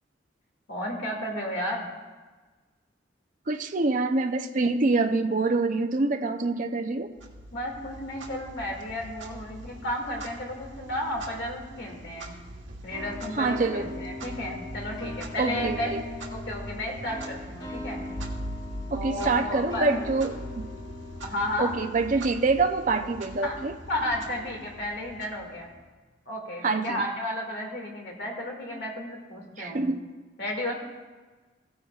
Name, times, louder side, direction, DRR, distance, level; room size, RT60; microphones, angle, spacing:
voice 1, 0.7-1.9 7.5-12.4 12.8-15.9 16.3-18.0 18.9-20.0 21.2-21.7 23.4-23.6 23.9-25.7 26.3-29.9 30.4-30.7, left 1 dB, 65° left, 0 dB, 2.2 m, -33 dB
voice 2, 3.5-7.1 13.4-13.9 15.4-16.0 18.9-20.7 21.6-23.7 26.6-27.0 29.6-30.0, right 3 dB, 45° right, 6 dB, 0.6 m, -26 dB
Clock, 7.2-25.9, right 1 dB, 85° right, 1.4 m, -42 dB
sound 1, 12.9-23.4, left 2 dB, 25° left, 2.6 m, -40 dB
16.5 x 9.5 x 2.4 m, 1.3 s
head